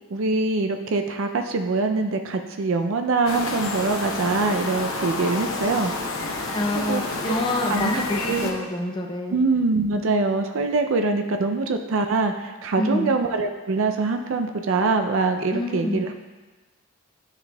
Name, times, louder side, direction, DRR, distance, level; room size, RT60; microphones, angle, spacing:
voice 1, 0.1-5.9 6.7-7.0 7.7-8.5 9.3-16.1, right 3 dB, 65° right, 5 dB, 0.4 m, -24 dB
sound 1, 3.3-8.5, left 2 dB, 75° left, 0.7 m, -29 dB
voice 2, 6.5-9.4 12.8-13.2 15.5-16.0, left 1 dB, 20° left, 2 dB, 0.5 m, -27 dB
9.4 x 6.0 x 2.2 m, 1.3 s
head